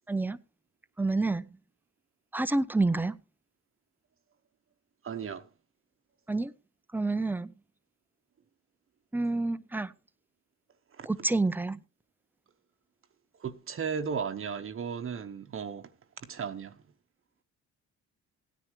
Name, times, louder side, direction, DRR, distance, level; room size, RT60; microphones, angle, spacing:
voice 1, 0.1-0.4 1.0-1.5 2.3-3.2 6.3-6.5 6.9-7.5 9.1-9.9 11.1-11.8, right 2 dB, 5° right, 0.6 m, -28 dB
voice 2, 5.0-5.5 10.9-11.1 13.4-16.8, right 6 dB, 45° right, 1.0 m, -36 dB
16.5 x 9.7 x 3.2 m
cardioid pair, 90°, 30 cm